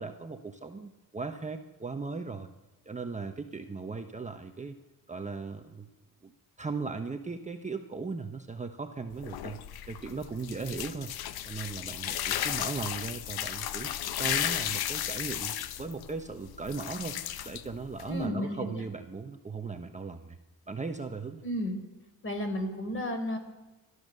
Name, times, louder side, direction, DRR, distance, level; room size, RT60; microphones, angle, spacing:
voice 1, 0.0-2.5 2.9-4.7 5.1-5.9 6.2-6.3 6.6-9.6 9.9-11.1 11.4-13.9 14.2-17.2 17.4-20.4 20.7-21.4, right 4 dB, 20° right, 5 dB, 1.1 m, -37 dB
sound 1, 9.1-18.3, left 11 dB, 80° left, 1.2 m, -34 dB
voice 2, 18.1-18.8 21.4-21.8 22.2-23.4, left 1 dB, 35° left, 7 dB, 4.5 m, -33 dB
30.0 x 13.0 x 6.7 m, 1.1 s
cardioid pair, 95°, 36 cm